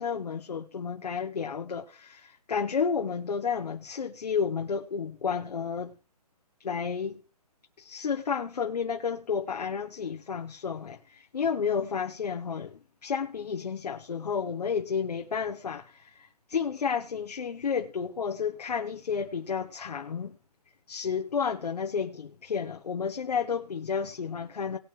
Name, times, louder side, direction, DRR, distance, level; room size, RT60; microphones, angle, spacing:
voice 1, 0.0-5.9 6.6-7.2 7.8-20.3 20.9-24.8, left 6 dB, 75° left, 1.2 m, -31 dB
19.5 x 6.8 x 3.2 m
hypercardioid pair, 165°, 20 cm